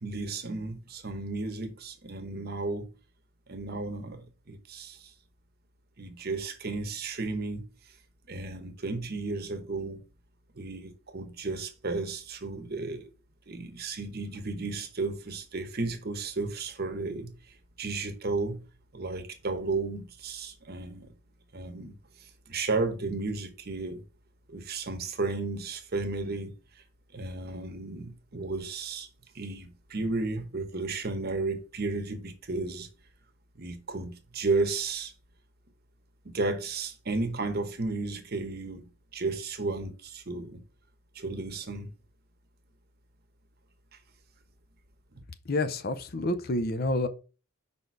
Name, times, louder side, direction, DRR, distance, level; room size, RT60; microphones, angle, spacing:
voice 1, 0.0-2.9 3.5-5.1 6.0-7.7 8.3-10.0 10.5-13.1 13.5-18.6 18.9-21.1 21.5-24.0 24.5-26.5 27.1-29.1 29.3-32.9 33.6-35.1 36.2-40.6 41.1-41.9, right 3 dB, 50° right, 1.0 m, -33 dB
voice 2, 45.5-47.1, left 2 dB, 45° left, 0.6 m, -28 dB
5.3 x 4.2 x 4.6 m
head